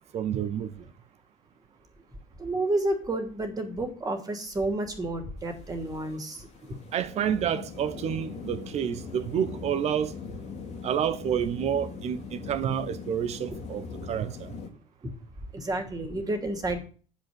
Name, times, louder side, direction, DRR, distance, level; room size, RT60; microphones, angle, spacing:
voice 1, 0.1-0.7 6.9-10.1 10.8-14.5, right 9 dB, 40° right, 1.0 m, -29 dB
voice 2, 2.4-6.5 15.0-15.1 15.5-16.8, right 2 dB, 20° right, 2.9 m, -30 dB
sound 1, 5.4-14.7, left 5 dB, 45° left, 2.3 m, -40 dB
10.5 x 5.2 x 7.7 m
figure-of-eight pair, 60°, 16 cm